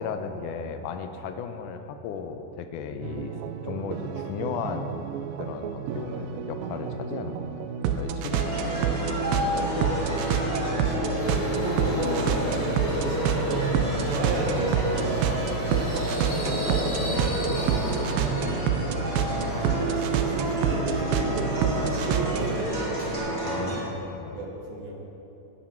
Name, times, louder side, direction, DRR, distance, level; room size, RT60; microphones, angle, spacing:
voice 1, 0.0-3.3 3.6-5.1 5.4-7.4 7.9-8.8 14.6-14.8 17.0-17.4 23.4-24.4, left 6 dB, 75° left, 7 dB, 2.2 m, -35 dB
sound 1, 3.0-22.6, right 7 dB, 85° right, 2.4 m, -29 dB
sound 2, 8.3-23.8, equal, 25° right, 1.9 m, -30 dB
voice 2, 9.6-10.0 10.8-18.8 19.5-23.3 24.3-24.9, right 2 dB, 60° right, -1 dB, 2.8 m, -34 dB
Subway metro underground, 11.2-23.2, left 1 dB, 45° left, 4.4 m, -40 dB
17.5 x 11.5 x 4.6 m, 3.0 s
omnidirectional pair, 4.0 m